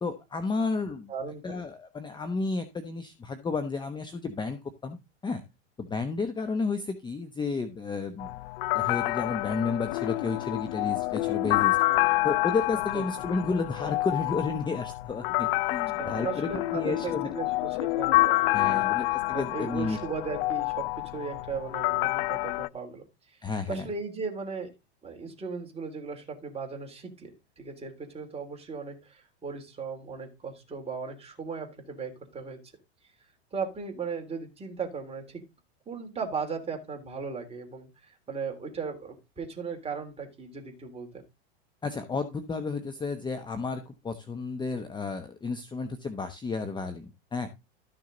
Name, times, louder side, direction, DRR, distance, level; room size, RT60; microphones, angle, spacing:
voice 1, 0.0-1.1 1.4-5.0 5.2-5.4 5.8-8.3 8.7-11.8 12.2-17.3 18.5-20.0 23.4-23.9 41.8-47.5, left 4 dB, 15° left, 9 dB, 0.9 m, -32 dB
voice 2, 1.1-1.6 12.9-13.0 16.0-18.9 19.3-23.0 23.7-24.7 25.0-27.3 27.6-32.6 33.5-35.4 35.9-41.2, right 5 dB, 15° right, 3 dB, 3.3 m, -37 dB
sound 1, 8.2-22.7, left 20 dB, 55° left, 0.4 m, -28 dB
13.0 x 6.5 x 3.9 m, 0.25 s
hypercardioid pair, 120°, 34 cm